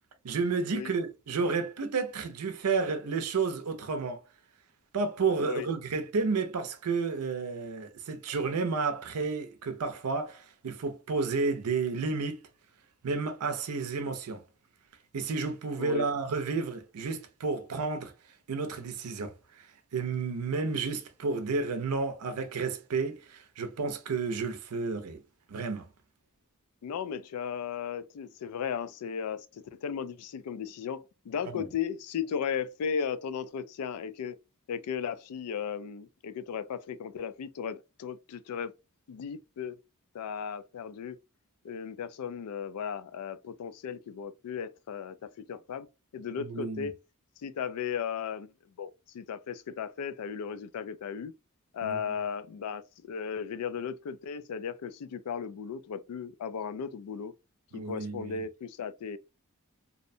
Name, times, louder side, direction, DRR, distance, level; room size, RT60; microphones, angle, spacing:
voice 1, 0.2-4.2 4.9-12.4 13.0-14.4 15.1-18.1 18.5-19.7 19.9-25.2 25.5-25.9 31.4-31.6 46.4-46.9 51.8-52.0 57.7-58.4, right 4 dB, 85° right, 0.5 m, -31 dB
voice 2, 26.8-34.4 34.7-38.7 39.1-39.8 40.1-41.2 41.6-45.9 46.1-46.9 47.4-48.5 48.8-51.3 51.7-57.3 57.7-59.2, left 7 dB, 85° left, 0.3 m, -36 dB
2.6 x 2.0 x 2.6 m
head